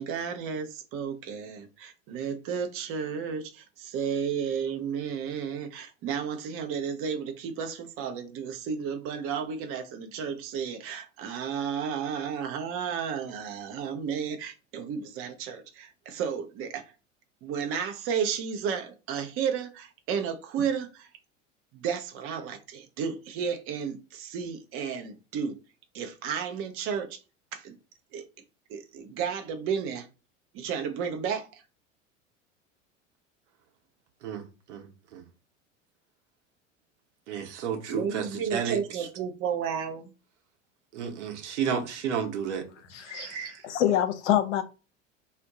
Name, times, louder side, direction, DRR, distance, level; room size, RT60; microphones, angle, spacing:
voice 1, 0.0-16.8 17.4-21.1 21.7-25.5 25.9-27.2 27.5-27.7 28.1-28.2 28.7-30.1 30.5-31.6 37.9-40.1, right 7 dB, 35° right, 0.6 m, -32 dB
voice 2, 34.7-35.2 37.3-38.2 38.5-38.8 40.9-42.6 43.0-43.6, right 7 dB, 65° right, 0.9 m, -32 dB
voice 3, 42.9-43.3 43.6-44.6, left 11 dB, 65° left, 0.7 m, -25 dB
2.5 x 2.2 x 3.6 m
figure-of-eight pair, 75°, 38 cm